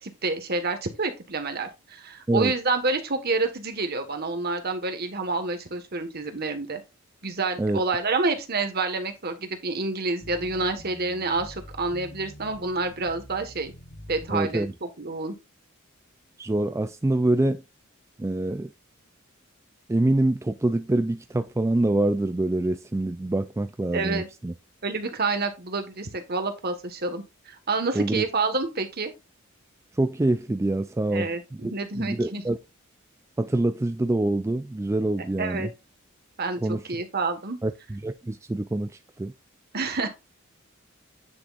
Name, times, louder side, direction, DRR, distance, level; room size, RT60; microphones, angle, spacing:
voice 1, 0.0-6.8 7.2-13.7 14.1-15.3 23.9-24.3 24.8-29.1 31.1-32.4 35.4-35.7 36.4-37.6 39.7-40.1, right 3 dB, 50° right, 1.5 m, -28 dB
sound 1, 10.2-14.8, equal, 65° left, 3.9 m, -45 dB
voice 2, 14.3-14.7 16.4-17.6 18.2-18.7 19.9-24.5 27.9-28.2 30.0-31.7 32.0-32.6 33.4-35.7 36.6-36.8 37.6-38.9 39.2-39.3, right 2 dB, 15° right, 0.3 m, -25 dB
9.9 x 6.2 x 2.5 m
head